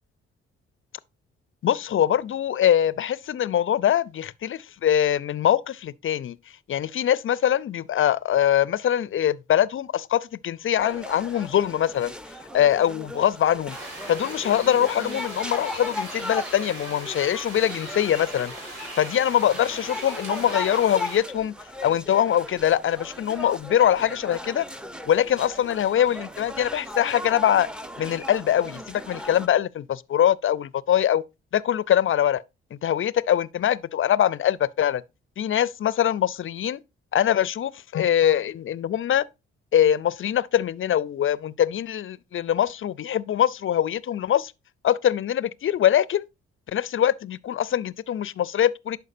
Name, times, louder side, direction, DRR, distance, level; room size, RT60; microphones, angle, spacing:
voice 1, 1.6-6.4 6.7-12.1 12.5-13.8 14.1-18.5 19.0-21.6 21.8-24.7 25.1-27.7 28.0-31.2 31.5-32.4 32.8-35.0 35.4-36.8 37.1-39.2 39.7-44.5 44.8-46.3 46.7-49.0, left 10 dB, 45° left, 0.5 m, -23 dB
sound 1, 10.8-29.5, left 1 dB, 5° right, 0.6 m, -37 dB
sound 2, 13.7-21.2, right 2 dB, 60° right, 4.2 m, -39 dB
11.0 x 4.7 x 2.6 m
hypercardioid pair, 40°, 30 cm